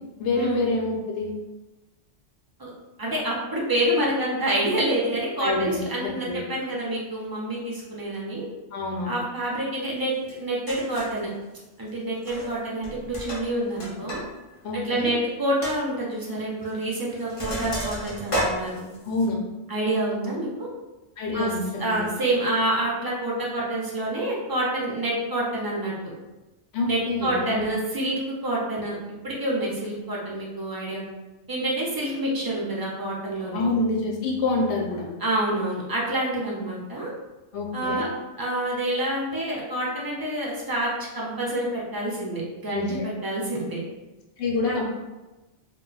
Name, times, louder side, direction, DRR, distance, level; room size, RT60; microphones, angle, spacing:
voice 1, 0.2-1.3 5.4-6.4 8.7-9.2 14.6-15.1 19.0-19.3 21.2-21.6 21.9-22.0 26.7-27.7 33.5-35.1 37.5-38.1 42.7-43.1 44.4-44.8, left 3 dB, 75° left, 0 dB, 0.9 m, -27 dB
voice 2, 3.0-8.4 9.0-10.1 10.4-11.3 11.8-14.2 14.7-18.8 19.7-20.7 21.3-21.5 21.8-25.9 26.9-29.0 29.2-31.1 31.5-33.6 35.2-37.1 37.7-38.1 38.4-43.8 44.6-44.8, right 1 dB, 35° right, -4 dB, 0.3 m, -27 dB
Sink (filling or washing), 10.3-10.4 10.7-11.2 12.2-12.6 12.8-14.2 14.5-14.6 15.1-15.2 15.6-15.8 16.6-16.8 17.1-19.3, equal, 40° left, 0.5 m, -31 dB
2.2 x 2.1 x 3.8 m, 1.1 s
omnidirectional pair, 1.2 m